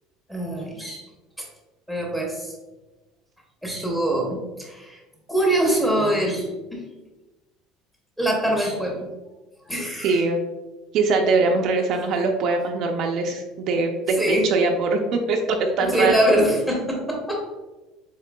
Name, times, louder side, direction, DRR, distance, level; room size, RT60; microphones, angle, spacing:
voice 1, 0.3-1.0 1.4-1.5 1.9-2.5 3.6-5.0 5.3-6.8 8.2-9.1 9.7-10.2 14.2-14.5 15.9-17.4, right 1 dB, 5° left, -1 dB, 0.7 m, -23 dB
voice 2, 10.0-10.4 10.9-16.1, right 3 dB, 40° right, 3 dB, 0.4 m, -22 dB
7.2 x 3.2 x 2.2 m, 1.1 s
cardioid pair, 175°, 0 cm